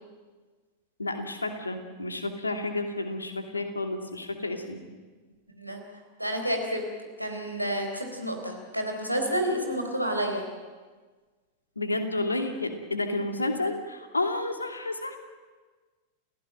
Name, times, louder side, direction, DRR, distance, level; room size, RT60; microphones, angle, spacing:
voice 1, 1.0-4.8 11.8-15.2, left 2 dB, 80° left, 6 dB, 2.7 m, -31 dB
voice 2, 6.2-6.9 7.2-10.5, equal, 90° right, 3 dB, 4.2 m, -29 dB
29.0 x 16.5 x 9.0 m, 1.4 s
figure-of-eight pair, 90°, 0 cm